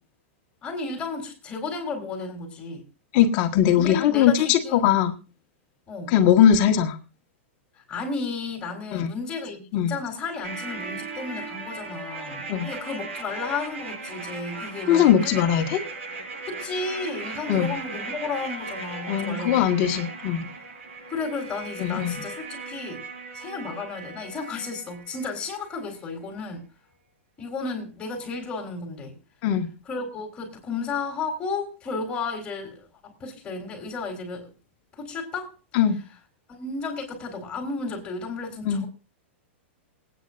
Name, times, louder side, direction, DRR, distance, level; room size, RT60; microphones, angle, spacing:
voice 1, 0.6-2.8 3.8-4.9 5.9-6.1 7.7-15.4 16.4-19.9 21.1-23.0 23.3-26.6 27.4-29.1 29.8-34.5 35.0-35.5 36.5-38.9, left 4 dB, 15° left, 3 dB, 4.3 m, -33 dB
voice 2, 3.1-5.1 6.1-7.0 8.9-9.1 9.7-9.9 12.5-12.7 14.9-15.8 17.5-17.7 19.1-20.5 21.8-22.2 29.4-29.7 35.7-36.0 38.7-38.8, left 9 dB, 35° left, 5 dB, 1.6 m, -20 dB
sound 1, 10.4-25.4 25.7-25.8, right 3 dB, 80° right, 6.1 m, -37 dB
27.5 x 9.3 x 2.6 m, 0.32 s
supercardioid pair, 160°, 7 cm